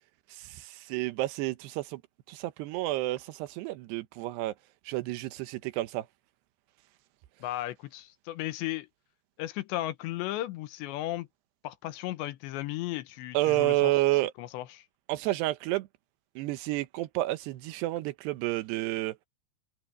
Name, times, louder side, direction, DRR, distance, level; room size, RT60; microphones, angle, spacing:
voice 1, 0.3-2.0 2.3-4.5 4.9-6.1 13.3-14.3 15.1-15.9 16.4-19.2, right 17 dB, 80° right, 2.8 m, -30 dB
voice 2, 7.4-8.9 9.4-11.3 11.6-13.9 14.4-14.8, left 15 dB, 90° left, 3.3 m, -35 dB
open air
omnidirectional pair, 5.0 m